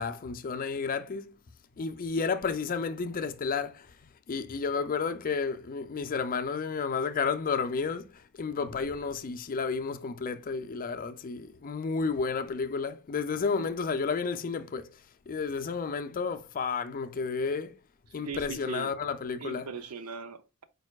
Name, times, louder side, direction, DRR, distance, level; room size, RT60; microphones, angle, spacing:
voice 1, 0.0-1.4 1.8-3.9 4.3-8.1 8.4-14.9 15.3-17.7 18.1-19.7, left 5 dB, 40° left, 0.4 m, -31 dB
voice 2, 18.2-19.0 19.4-20.6, right 5 dB, 80° right, 0.6 m, -39 dB
4.8 x 4.3 x 2.3 m
head